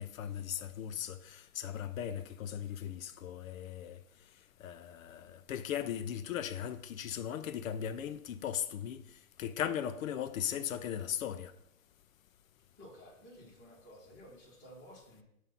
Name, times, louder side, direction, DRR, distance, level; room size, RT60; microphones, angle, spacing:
voice 1, 0.0-4.0 4.6-9.0 9.4-11.5, left 9 dB, 60° left, 0.5 m, -38 dB
voice 2, 12.8-15.2, equal, 15° left, 1.4 m, -54 dB
7.3 x 2.7 x 5.5 m
hypercardioid pair, 160°, 46 cm